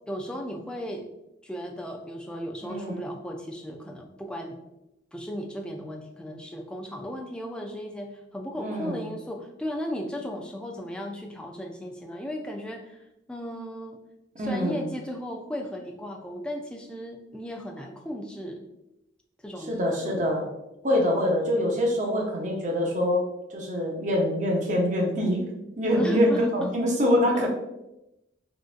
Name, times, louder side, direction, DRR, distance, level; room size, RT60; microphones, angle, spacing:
voice 1, 0.1-1.1 1.4-4.6 5.1-14.0 14.4-18.6 19.4-20.2 25.9-26.7 27.1-27.5, equal, 5° left, 1 dB, 0.3 m, -36 dB
voice 2, 2.6-3.0 8.6-9.0 14.4-14.8 19.7-20.5 20.8-25.5 25.8-27.5, equal, 40° right, -1 dB, 0.7 m, -25 dB
3.8 x 2.5 x 2.4 m, 0.90 s
head